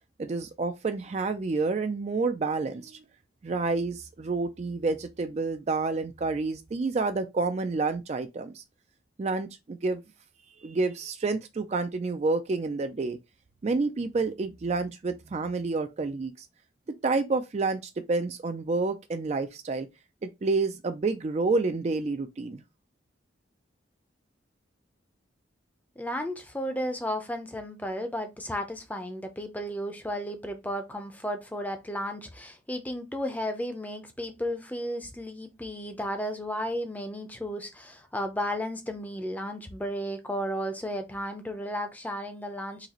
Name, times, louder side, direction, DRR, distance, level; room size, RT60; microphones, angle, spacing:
voice 1, 0.2-3.0 3.4-8.6 9.2-10.0 10.6-13.2 13.6-16.5 17.0-19.9 20.2-22.6, right 3 dB, 35° right, 0.3 m, -29 dB
voice 2, 26.0-42.9, equal, 10° left, 0.6 m, -34 dB
4.0 x 2.9 x 2.9 m
head